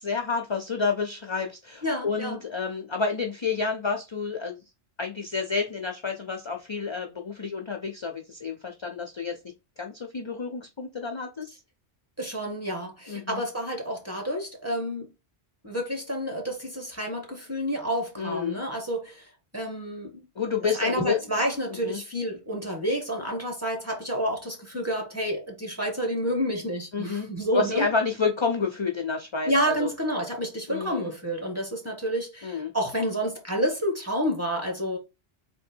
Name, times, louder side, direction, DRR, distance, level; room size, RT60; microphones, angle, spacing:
voice 1, 0.0-4.6 5.0-9.4 9.8-11.5 13.1-13.4 18.2-18.6 20.4-21.2 21.7-22.0 26.9-29.9 30.7-31.1 32.4-32.7, left 5 dB, 40° left, 0.4 m, -29 dB
voice 2, 1.8-2.4 12.2-15.1 15.6-19.3 19.5-20.2 20.8-27.9 29.4-35.0, equal, 15° right, 1.4 m, -29 dB
3.7 x 2.8 x 4.4 m
omnidirectional pair, 1.1 m